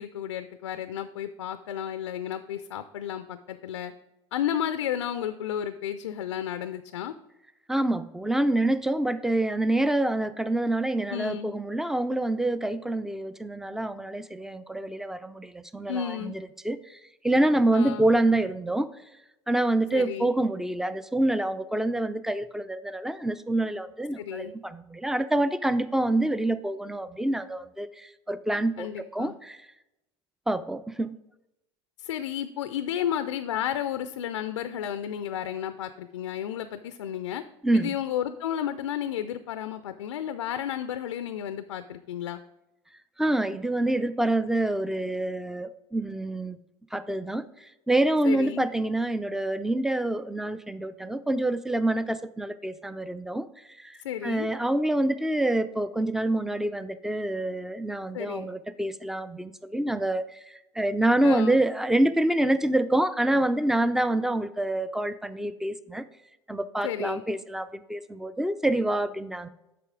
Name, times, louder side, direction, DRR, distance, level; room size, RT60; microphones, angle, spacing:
voice 1, 0.0-3.9 4.3-7.1 11.1-11.5 15.9-16.3 17.7-18.0 19.9-20.3 24.2-24.5 28.8-29.3 32.0-37.4 37.7-42.4 48.2-48.7 54.0-54.5 58.1-58.5 61.2-61.6 66.8-67.2, left 10 dB, 80° left, 11 dB, 0.4 m, -32 dB
voice 2, 7.7-17.0 17.2-18.9 19.5-29.6 30.5-31.2 37.6-37.9 43.2-46.6 46.9-53.5 53.8-66.0 66.5-69.5, right 1 dB, 5° right, 14 dB, 0.4 m, -26 dB
8.3 x 5.9 x 3.7 m, 0.91 s
hypercardioid pair, 75°, 15 cm